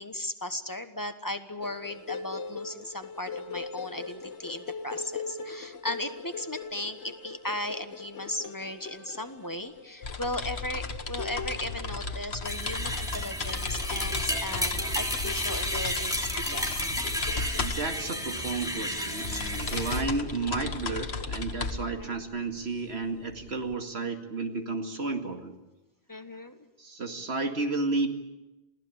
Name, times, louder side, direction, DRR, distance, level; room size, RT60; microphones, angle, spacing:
voice 1, 0.0-16.7 19.3-20.0 22.0-22.1 26.1-26.6, left 1 dB, 20° left, 8 dB, 1.3 m, -37 dB
sound 1, 1.6-21.4, left 5 dB, 90° left, 1.4 m, -42 dB
sound 2, 10.0-23.7, left 4 dB, 70° left, 1.7 m, -35 dB
sound 3, 12.4-20.0, equal, 5° right, 2.9 m, -32 dB
voice 2, 17.6-25.5 26.8-28.1, right 3 dB, 70° right, 5 dB, 2.4 m, -32 dB
28.0 x 17.0 x 8.7 m, 1.0 s
omnidirectional pair, 1.1 m